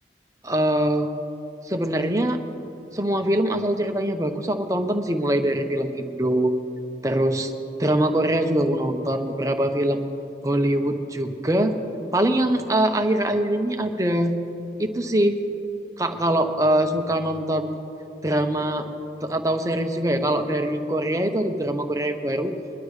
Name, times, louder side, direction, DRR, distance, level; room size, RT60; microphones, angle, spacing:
voice 1, 0.4-1.1 1.6-2.4 2.9-6.5 7.0-7.5 7.8-10.0 10.4-11.7 12.1-14.3 14.8-15.4 16.0-17.8 18.2-18.8 19.2-22.5, right 1 dB, 20° right, 6 dB, 0.8 m, -23 dB
22.0 x 11.5 x 3.2 m, 2.9 s
head